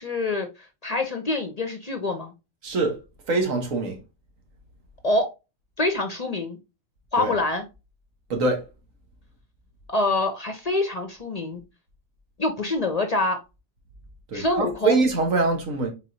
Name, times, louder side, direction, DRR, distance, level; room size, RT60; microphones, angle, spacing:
voice 1, 0.0-2.3 5.0-5.3 5.8-6.6 7.1-7.6 9.9-11.6 12.4-13.4 14.3-15.0, left 2 dB, 45° left, 0.6 m, -25 dB
voice 2, 2.6-3.0 3.3-4.0 7.2-7.3 8.3-8.6 14.3-15.9, right 3 dB, 90° right, 1.6 m, -23 dB
4.3 x 4.2 x 2.7 m
omnidirectional pair, 1.3 m